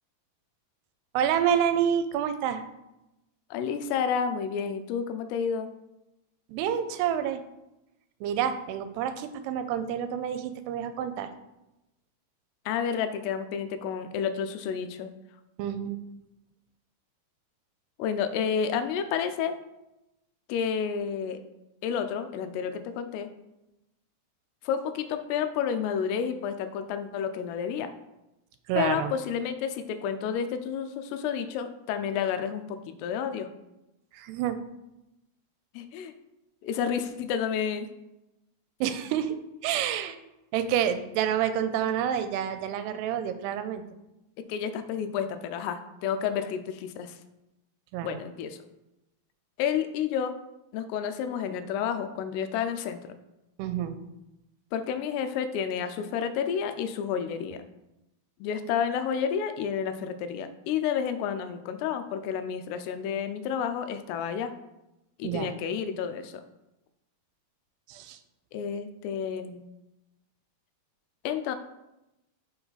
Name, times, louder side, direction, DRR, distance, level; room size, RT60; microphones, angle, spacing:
voice 1, 1.1-2.6 6.5-7.4 8.2-11.3 15.6-16.0 28.7-29.1 34.1-34.6 38.8-39.3 39.6-40.2 40.5-43.8 47.9-48.2 53.6-54.0 65.2-65.5 67.9-68.2, right 9 dB, 85° right, 10 dB, 2.6 m, -28 dB
voice 2, 3.5-5.7 12.7-15.1 18.0-19.6 20.5-21.4 21.8-23.3 24.6-27.9 28.8-33.5 35.7-36.1 36.6-37.9 44.5-47.2 48.0-48.6 49.6-50.3 50.7-53.0 54.7-57.6 58.4-64.5 65.2-66.4 68.5-69.6 71.2-71.6, left 7 dB, 90° left, 9 dB, 2.6 m, -30 dB
6.0 x 4.6 x 4.0 m, 0.93 s
omnidirectional pair, 4.7 m